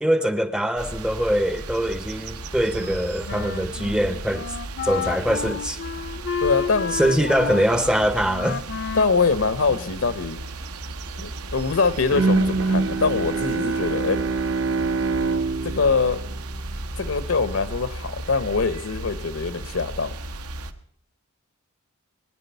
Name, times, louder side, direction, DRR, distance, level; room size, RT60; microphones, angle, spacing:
voice 1, 0.0-4.6 4.8-5.8 6.9-8.7, equal, 5° right, 0.5 m, -23 dB
sound 1, 0.8-20.7, right 2 dB, 90° right, 1.0 m, -35 dB
Wind instrument woodwind instrument, 2.8-10.2, left 6 dB, 50° left, 0.6 m, -32 dB
voice 2, 6.4-7.3 8.9-10.4 11.2-14.2 15.6-16.2 17.0-20.1, left 4 dB, 70° left, 0.9 m, -23 dB
Bowed string instrument, 12.1-17.2, right 3 dB, 55° right, 0.7 m, -25 dB
20.5 x 10.0 x 5.6 m
head